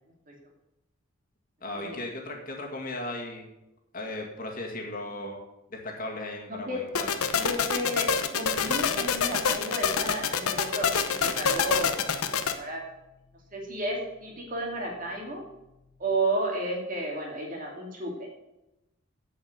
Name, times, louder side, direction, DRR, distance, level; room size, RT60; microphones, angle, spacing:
voice 1, 1.6-3.5 3.9-5.4 5.7-7.1, left 2 dB, 40° left, 0 dB, 2.0 m, -36 dB
voice 2, 6.5-6.8 7.3-8.1 8.3-12.0 12.4-12.8 13.5-15.4 16.0-18.3, right 1 dB, 40° right, 0 dB, 2.5 m, -32 dB
sound 1, 7.0-12.5, left 6 dB, 85° left, 1.0 m, -26 dB
7.9 x 7.7 x 7.9 m, 0.92 s
head